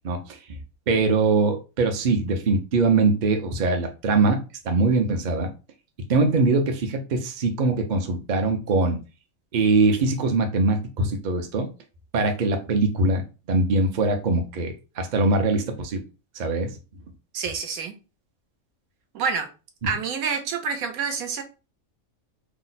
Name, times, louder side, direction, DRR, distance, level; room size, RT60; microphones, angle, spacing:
voice 1, 0.0-0.4 0.9-5.5 6.1-9.0 9.5-11.7 12.1-16.0 16.3-16.8, right 3 dB, 50° right, 4 dB, 0.5 m, -22 dB
voice 2, 17.3-17.9 19.1-19.5 19.8-21.4, right 6 dB, 90° right, 5 dB, 1.2 m, -27 dB
2.9 x 2.1 x 3.9 m, 0.31 s
omnidirectional pair, 1.5 m